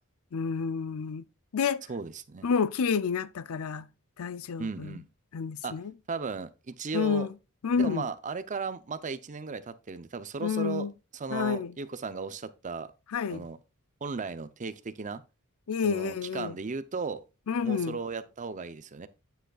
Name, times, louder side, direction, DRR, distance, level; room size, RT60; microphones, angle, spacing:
voice 1, 0.3-1.2 1.5-1.8 2.4-3.9 4.2-5.0 5.3-5.9 6.9-7.3 7.6-8.1 10.4-10.9 11.3-11.7 13.1-13.5 15.7-16.6 17.5-18.0, left 6 dB, 70° left, 0.5 m, -29 dB
voice 2, 1.9-2.5 4.6-5.1 5.6-5.8 6.1-7.3 7.8-10.9 11.1-12.9 13.3-13.6 14.0-15.2 15.8-17.2 17.6-19.1, right 4 dB, 35° right, 0.6 m, -36 dB
9.1 x 7.7 x 2.4 m
head